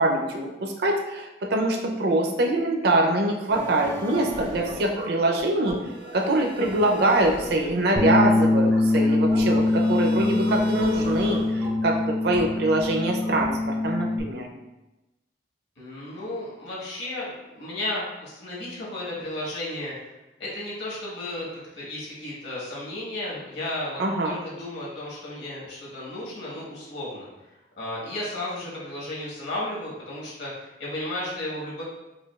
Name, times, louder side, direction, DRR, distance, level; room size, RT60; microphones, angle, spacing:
voice 1, 0.0-5.8 6.1-9.6 9.9-12.0 12.2-13.6 13.8-14.4 24.0-24.3, right 1 dB, 60° right, 1 dB, 0.5 m, -24 dB
sound 1, 3.5-13.9, right 2 dB, 90° right, 1.0 m, -37 dB
Bass guitar, 8.0-14.2, left 2 dB, ahead, 0.4 m, -23 dB
voice 2, 15.8-20.1 20.4-21.5 21.7-27.3 27.8-31.8, left 1 dB, 75° left, -6 dB, 1.4 m, -34 dB
5.0 x 2.3 x 2.3 m, 1.0 s
head